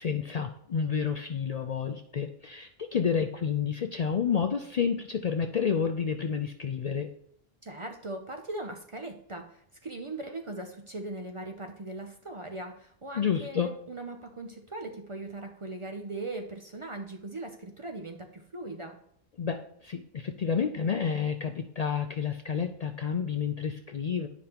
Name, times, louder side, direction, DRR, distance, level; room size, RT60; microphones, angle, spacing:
voice 1, 0.0-7.1 13.1-13.7 19.4-24.3, left 6 dB, 55° left, 5 dB, 0.5 m, -30 dB
voice 2, 7.6-19.0, right 2 dB, 40° right, 4 dB, 0.5 m, -39 dB
9.6 x 5.2 x 2.9 m, 0.68 s
omnidirectional pair, 1.1 m